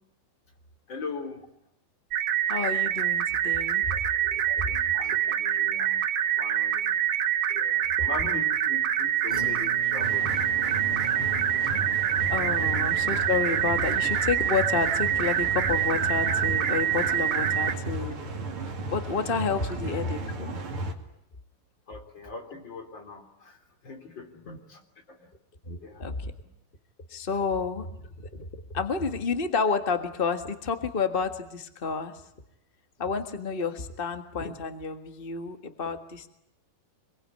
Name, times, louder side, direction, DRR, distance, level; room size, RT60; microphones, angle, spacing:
voice 1, 0.9-1.5 3.9-4.0 4.5-6.0 6.4-6.9 7.5-11.7 12.6-12.7 21.9-25.3 25.8-26.0, left 4 dB, 30° left, 5 dB, 3.9 m, -41 dB
sound 1, 2.1-17.7, right 10 dB, 90° right, 1.1 m, -26 dB
voice 2, 2.5-4.6 5.0-5.6 7.5-7.7 8.0-8.1 12.3-18.2 18.8-20.6 24.5-24.6 25.6-26.3 27.1-27.9 28.3-32.1 33.0-36.3, left 5 dB, 70° left, 8 dB, 0.5 m, -30 dB
sound 2, 9.3-14.5 14.8-15.3 15.7-15.8, equal, 10° right, 5.2 m, -43 dB
sound 3, 10.0-20.9, right 2 dB, 40° right, 3.0 m, -35 dB
26.0 x 22.5 x 9.9 m, 0.78 s
omnidirectional pair, 4.2 m